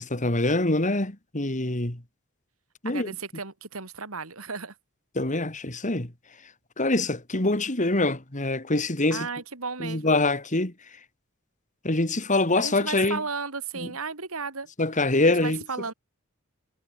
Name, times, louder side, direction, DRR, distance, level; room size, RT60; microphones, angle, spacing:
voice 1, 0.1-2.0 2.8-3.1 5.1-6.1 6.8-9.3 9.8-10.7 11.8-13.2 14.8-15.6, left 2 dB, 35° left, 2.8 m, -24 dB
voice 2, 2.8-4.7 9.1-10.2 12.6-14.7 15.2-15.9, right 4 dB, 80° right, 3.1 m, -34 dB
head